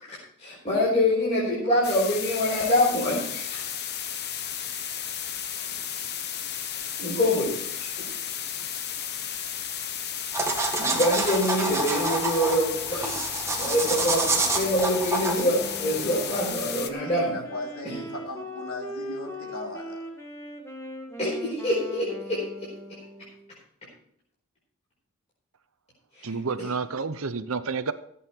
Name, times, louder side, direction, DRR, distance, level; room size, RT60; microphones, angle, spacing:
voice 1, 0.0-3.6 6.7-7.9 10.8-17.4 17.8-18.0 21.2-22.5 22.9-23.0 26.2-26.3, left 1 dB, 30° left, 4.7 m, -26 dB
sound 1, 1.8-16.9, left 9 dB, 50° left, 1.0 m, -33 dB
sound 2, 10.3-16.5, right 3 dB, 10° right, 1.6 m, -28 dB
Wind instrument woodwind instrument, 15.5-23.5, equal, 10° left, 1.9 m, -39 dB
voice 2, 17.0-20.0, left 1 dB, 70° left, 2.9 m, -38 dB
voice 3, 26.2-27.9, right 4 dB, 65° right, 0.8 m, -29 dB
15.0 x 8.6 x 4.6 m
head